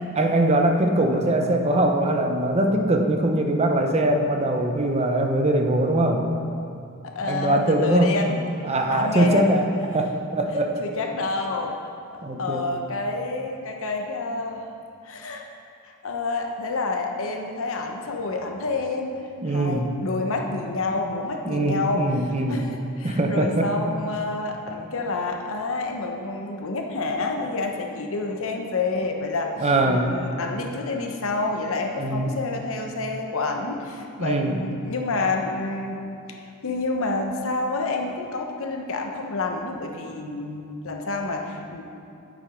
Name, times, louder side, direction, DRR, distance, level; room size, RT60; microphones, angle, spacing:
voice 1, 0.2-6.2 7.2-8.1 8.6-9.7 9.9-10.8 12.2-12.8 19.4-19.9 21.4-22.7 23.0-23.7 29.6-30.1 32.0-32.4 34.2-34.5, right 1 dB, 30° right, 4 dB, 0.7 m, -22 dB
voice 2, 7.0-8.4 8.9-9.4 10.8-11.8 12.4-14.6 15.0-15.4 16.0-19.2 19.4-22.0 22.5-36.0 36.4-41.8, left 3 dB, 65° left, 2 dB, 1.0 m, -28 dB
9.7 x 7.6 x 5.1 m, 2.6 s
head